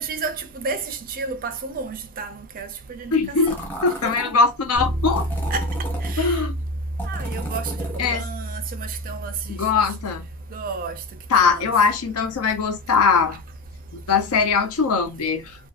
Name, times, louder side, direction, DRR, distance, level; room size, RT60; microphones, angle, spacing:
voice 1, 0.0-3.4 4.0-4.1 5.5-5.6 6.0-6.3 7.1-9.6 10.5-11.0 11.3-11.7, right 4 dB, 40° right, 0.4 m, -32 dB
voice 2, 3.1-5.2 6.2-6.6 8.0-8.3 9.5-10.3 11.3-13.4 14.1-15.6, left 5 dB, 90° left, 0.6 m, -21 dB
sound 1, 3.5-4.3 5.1-6.1 7.0-8.2, right 1 dB, 10° left, 0.7 m, -34 dB
Bass guitar, 4.7-14.5, right 1 dB, 25° left, 1.1 m, -32 dB
2.6 x 2.2 x 2.4 m
head